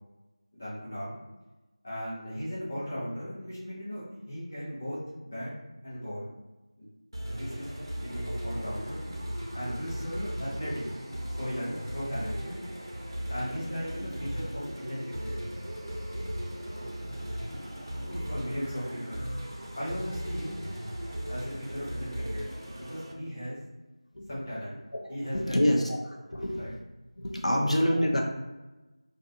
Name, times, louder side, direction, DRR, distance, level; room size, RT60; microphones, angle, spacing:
voice 1, 0.5-1.2 1.8-5.0 5.3-5.5 5.8-6.3 6.8-6.9 7.3-7.7 8.0-9.0 9.5-10.8 11.3-12.5 13.3-15.4 16.7-16.8 18.0-19.2 19.8-20.6 21.3-22.5 22.8-23.6 24.3-24.8 25.1-25.6 26.6-26.7 27.5-27.7, equal, 20° left, -10 dB, 0.7 m, -37 dB
sound 1, 7.1-23.1, equal, 40° right, 0.5 m, -37 dB
voice 2, 25.3-26.8 27.2-28.2, equal, 80° left, 0 dB, 0.6 m, -27 dB
2.5 x 2.4 x 2.5 m, 1.1 s
figure-of-eight pair, 175°, 3 cm